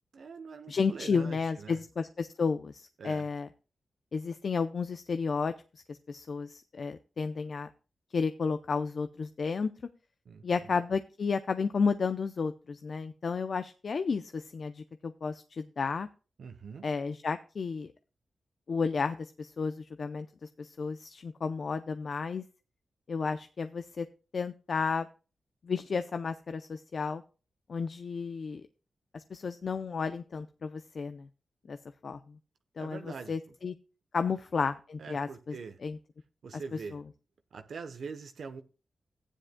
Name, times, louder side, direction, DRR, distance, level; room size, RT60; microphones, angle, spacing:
voice 1, 0.1-1.8 3.0-3.3 10.3-10.4 16.4-16.8 32.8-33.3 35.0-35.8 36.4-37.0 37.5-38.6, right 5 dB, 75° right, 0.8 m, -43 dB
voice 2, 0.7-3.5 4.1-5.5 5.9-7.7 8.1-9.7 10.4-16.1 16.8-17.9 18.7-20.3 20.6-22.4 23.1-24.1 24.3-25.1 25.6-27.2 27.7-28.7 29.1-31.3 31.7-31.8 32.0-32.4 32.8-33.7 34.1-35.6 35.8-36.0 36.5-37.0, left 5 dB, 60° left, 0.5 m, -32 dB
15.0 x 9.9 x 2.2 m
cardioid pair, 75°, 0 cm